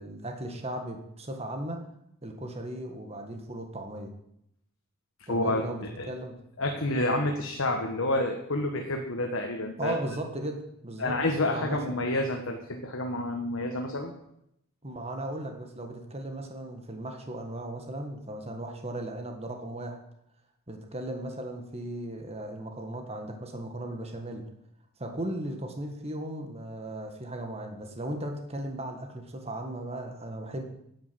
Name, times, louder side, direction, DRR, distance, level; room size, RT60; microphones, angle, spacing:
voice 1, 0.0-1.8 2.2-4.1 5.3-6.4 9.8-11.2 11.5-12.0 14.8-20.0 20.7-24.4 25.0-30.6, right 1 dB, 30° right, 4 dB, 1.6 m, -36 dB
voice 2, 5.3-5.6 6.0-6.1 6.6-9.9 11.0-14.1, left 1 dB, 60° left, 3 dB, 1.4 m, -29 dB
10.5 x 8.5 x 7.9 m, 0.78 s
head